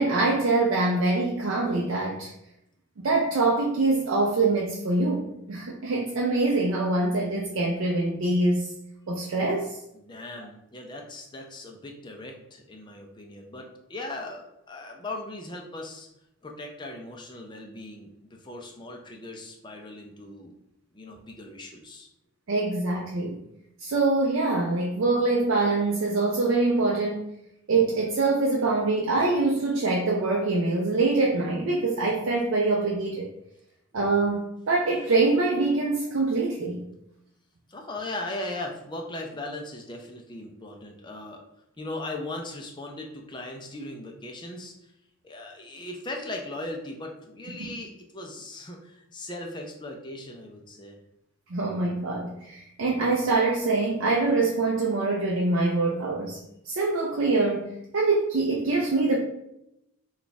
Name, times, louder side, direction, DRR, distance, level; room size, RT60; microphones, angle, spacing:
voice 1, 0.0-2.3 3.0-8.7 9.1-9.8 22.5-23.4 23.8-27.3 27.7-33.3 33.9-36.9 47.6-47.7 51.5-56.4 56.6-59.2, right 3 dB, 70° right, -2 dB, 0.5 m, -24 dB
voice 2, 9.9-16.1 16.4-20.5 20.9-22.1 37.7-41.4 41.8-44.7 45.2-51.0, left 2 dB, 20° left, 1 dB, 0.4 m, -38 dB
3.4 x 2.4 x 3.9 m, 0.83 s
head